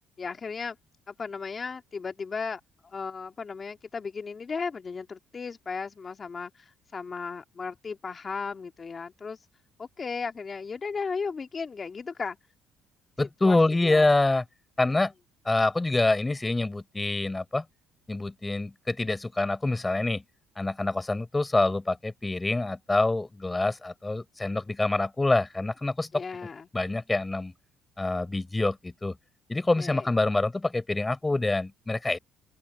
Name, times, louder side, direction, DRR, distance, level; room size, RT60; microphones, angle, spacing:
voice 1, 0.2-0.8 1.1-9.4 9.8-12.4 13.4-14.1 26.1-26.7 29.8-30.1, left 5 dB, 30° left, 2.1 m, -35 dB
voice 2, 13.2-14.4 14.8-15.1 15.4-17.6 18.1-20.2 20.6-26.2 26.7-27.5 28.0-29.2 29.5-32.2, left 2 dB, 15° left, 4.6 m, -26 dB
open air
cardioid pair, 115°, 0 cm